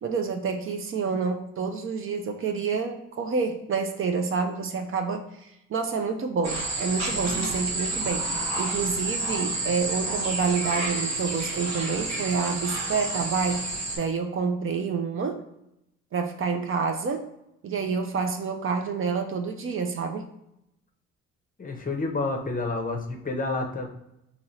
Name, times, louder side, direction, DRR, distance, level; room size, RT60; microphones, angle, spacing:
voice 1, 0.0-13.7 14.0-15.4 16.1-17.3 17.6-20.3, right 5 dB, 45° right, 5 dB, 0.4 m, -28 dB
sound 1, 6.4-14.0, right 2 dB, 60° right, 1.1 m, -30 dB
voice 2, 21.6-23.9, left 3 dB, 30° left, 2 dB, 0.6 m, -29 dB
3.0 x 2.8 x 2.7 m, 0.84 s
cardioid pair, 90°, 30 cm